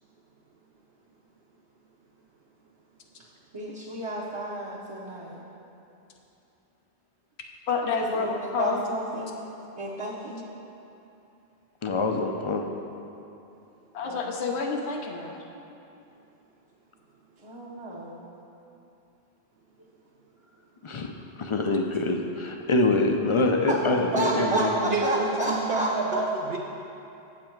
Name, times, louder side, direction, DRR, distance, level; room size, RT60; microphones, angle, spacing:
voice 1, 3.5-5.4 7.8-9.3 9.8-10.4 14.0-14.4 17.4-18.2 23.0-23.1 23.7-23.8 24.1-25.9, right 1 dB, 30° right, -6 dB, 0.8 m, -31 dB
voice 2, 7.7-8.8 13.9-15.4, left 5 dB, 90° left, 1 dB, 1.0 m, -29 dB
voice 3, 11.8-12.6 20.8-21.1 21.4-24.7, left 2 dB, 45° left, 3 dB, 0.4 m, -25 dB
voice 4, 24.1-26.6, right 3 dB, 70° right, -1 dB, 0.9 m, -28 dB
7.4 x 7.3 x 4.5 m, 2.8 s
omnidirectional pair, 1.1 m